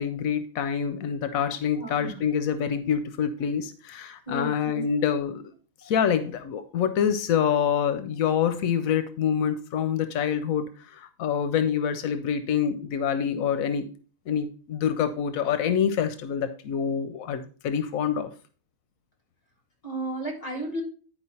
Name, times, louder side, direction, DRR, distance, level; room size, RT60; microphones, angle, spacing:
voice 1, 0.0-5.4 5.8-13.9 14.3-18.3, left 8 dB, 85° left, 11 dB, 1.1 m, -26 dB
voice 2, 1.8-2.2 4.3-4.8 5.8-5.9 19.8-20.8, right 1 dB, 30° left, 1 dB, 2.3 m, -33 dB
10.0 x 4.7 x 4.2 m, 0.39 s
omnidirectional pair, 1.4 m